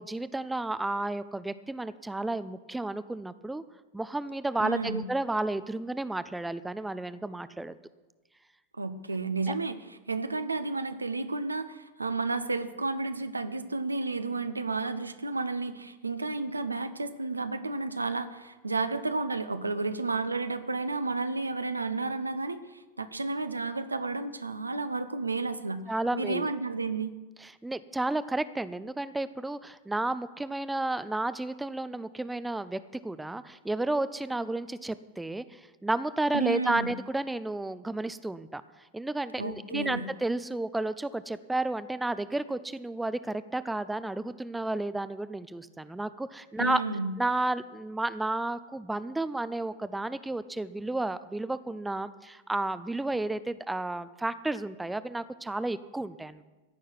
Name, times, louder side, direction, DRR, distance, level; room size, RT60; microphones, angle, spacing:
voice 1, 0.0-3.6 3.9-7.7 9.5-9.6 25.9-26.5 27.4-38.6 38.9-46.8 47.2-56.4, right 2 dB, 5° right, 14 dB, 0.6 m, -32 dB
voice 2, 4.6-5.0 8.8-25.8 26.1-27.1 36.3-36.9 39.4-40.1 46.6-47.1, right 3 dB, 80° right, 11 dB, 0.9 m, -32 dB
15.5 x 6.5 x 9.5 m, 1.2 s
figure-of-eight pair, 90°, 0 cm